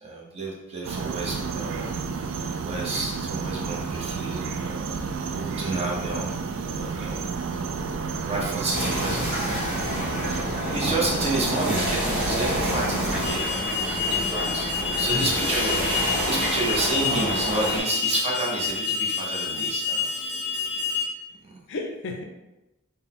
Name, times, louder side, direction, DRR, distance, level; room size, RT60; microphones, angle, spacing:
voice 1, 0.0-2.0 2.6-5.1 5.3-6.4 6.7-7.2 8.3-9.7 10.3-13.5 13.8-20.0 21.5-21.6, right 2 dB, 30° right, -3 dB, 0.8 m, -30 dB
sound 1, 0.8-13.4, right 5 dB, 60° right, 0.3 m, -31 dB
sound 2, 8.7-17.8, equal, 5° right, 1.3 m, -28 dB
Alarm, 13.2-21.0, left 5 dB, 25° left, 0.8 m, -28 dB
voice 2, 21.7-22.2, left 2 dB, 60° left, 3 dB, 0.5 m, -33 dB
3.9 x 2.1 x 3.7 m, 0.97 s
head